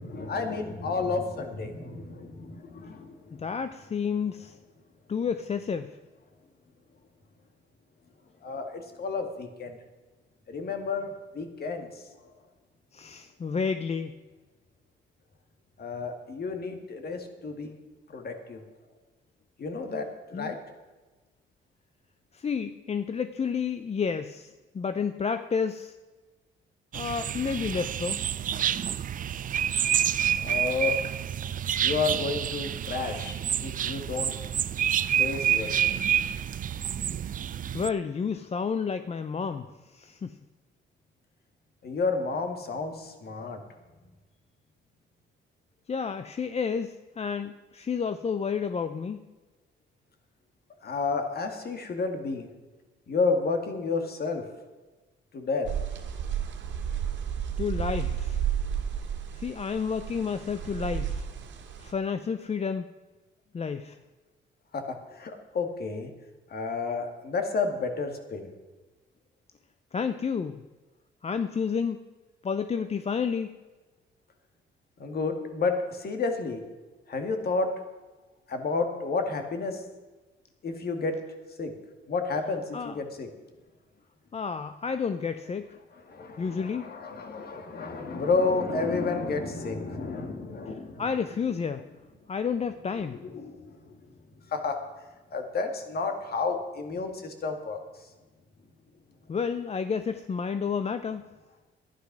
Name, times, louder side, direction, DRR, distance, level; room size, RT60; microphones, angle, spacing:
voice 1, 0.0-3.2 8.4-9.8 10.5-12.1 15.8-17.7 18.1-18.6 19.6-20.6 30.4-31.0 31.8-33.4 33.6-34.3 35.2-36.0 41.8-43.6 50.8-52.5 53.1-54.4 55.3-55.7 64.7-66.1 66.5-68.5 75.0-76.6 77.1-77.8 78.5-79.8 80.6-81.2 81.6-81.7 82.1-83.3 86.1-91.0 93.0-93.9 94.5-94.8 95.3-97.8, left 4 dB, 50° left, 5 dB, 2.1 m, -31 dB
voice 2, 3.3-4.6 5.1-5.9 12.9-14.2 20.3-20.5 22.3-25.9 26.9-28.2 37.7-40.4 45.9-49.2 57.6-58.4 59.4-61.3 61.8-62.9 63.5-64.0 69.9-70.6 71.2-72.0 72.4-73.5 82.7-83.0 84.3-85.7 86.4-86.9 91.0-91.9 92.3-93.2 99.3-101.2, left 6 dB, 30° left, 10 dB, 0.6 m, -30 dB
sound 1, 26.9-37.9, right 9 dB, 45° right, 0.4 m, -28 dB
sound 2, 55.6-61.9, right 8 dB, 70° right, 1.8 m, -32 dB
11.5 x 10.0 x 6.1 m, 1.2 s
cardioid pair, 90°, 20 cm